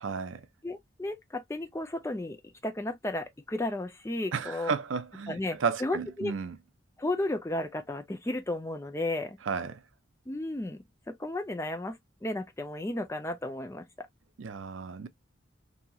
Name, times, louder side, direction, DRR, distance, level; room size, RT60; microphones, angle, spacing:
voice 1, 0.0-0.5 4.3-6.6 9.4-9.8 14.4-15.1, right 5 dB, 80° right, 0.5 m, -33 dB
voice 2, 0.6-2.4 2.6-4.7 5.3-6.3 7.0-9.4 10.3-10.8 11.1-14.1, left 1 dB, 15° left, 0.4 m, -33 dB
2.8 x 2.7 x 2.3 m
head